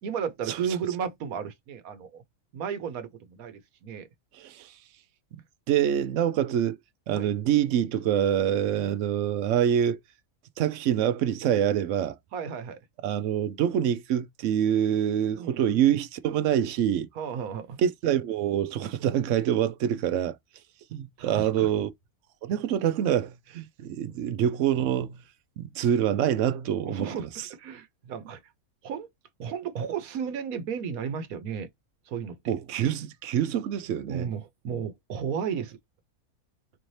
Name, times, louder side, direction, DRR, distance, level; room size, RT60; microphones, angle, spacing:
voice 1, 0.0-2.2 2.5-4.1 7.1-7.3 12.3-12.8 15.4-15.6 17.2-17.8 21.2-21.7 26.8-28.4 28.8-29.1 29.4-31.7 32.1-32.5 34.0-35.8, right 7 dB, 85° right, 1.2 m, -33 dB
voice 2, 4.3-4.7 5.7-6.8 7.1-10.0 10.6-12.2 13.0-17.1 17.8-20.4 20.9-21.9 22.4-25.2 25.6-27.3 32.5-34.3, right 10 dB, 70° right, 0.8 m, -26 dB
4.2 x 2.7 x 3.1 m
omnidirectional pair, 1.5 m